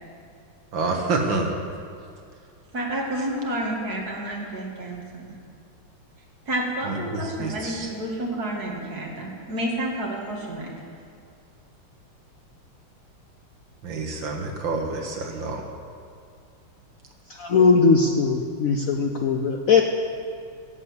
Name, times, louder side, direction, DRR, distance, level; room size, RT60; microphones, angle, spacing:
voice 1, 0.7-1.6 6.9-7.9 13.8-15.6, right 3 dB, 70° right, 2 dB, 2.2 m, -28 dB
voice 2, 2.7-5.4 6.5-10.8, right 1 dB, 50° right, -2 dB, 2.8 m, -30 dB
voice 3, 17.4-19.8, left 5 dB, 60° left, 4 dB, 0.9 m, -19 dB
16.5 x 7.8 x 8.2 m, 2.3 s
omnidirectional pair, 2.2 m